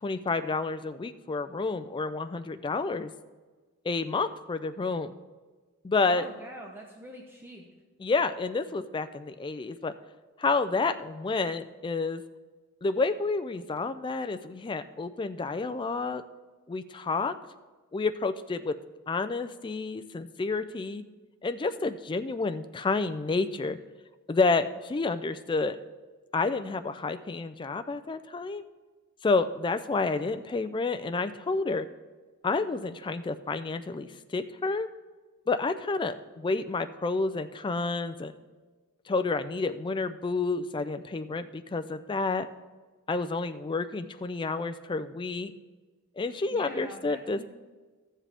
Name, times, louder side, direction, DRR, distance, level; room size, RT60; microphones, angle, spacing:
voice 1, 0.0-3.1 3.8-5.1 5.8-6.3 8.0-9.9 10.4-12.2 12.8-16.2 16.7-17.3 17.9-18.8 19.1-21.0 21.4-23.8 24.3-25.8 26.3-28.6 29.2-31.9 32.4-34.9 35.5-38.3 39.1-42.5 43.1-45.5 46.2-47.5, left 3 dB, 20° left, 10 dB, 0.3 m, -29 dB
voice 2, 6.1-7.6 46.5-47.5, equal, 10° right, 0 dB, 0.8 m, -44 dB
13.5 x 7.4 x 3.4 m, 1.3 s
head